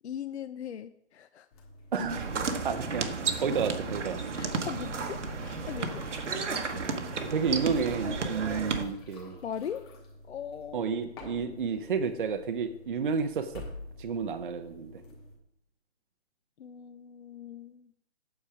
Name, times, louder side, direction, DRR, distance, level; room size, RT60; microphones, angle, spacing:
voice 1, 0.0-1.5 4.4-6.2 6.7-7.1 9.4-9.9 10.3-10.9 16.6-17.9, left 8 dB, 70° left, 11 dB, 0.6 m, -40 dB
sound 1, 1.5-15.3, left 1 dB, 20° left, 1.7 m, -48 dB
voice 2, 1.9-2.3 2.6-4.2 7.2-9.4 10.7-13.6 14.0-15.0, right 5 dB, 45° right, 8 dB, 0.6 m, -31 dB
sound 2, 2.1-8.8, right 4 dB, 85° right, 1.3 m, -33 dB
8.7 x 7.1 x 4.8 m, 0.76 s
hypercardioid pair, 165°, 35 cm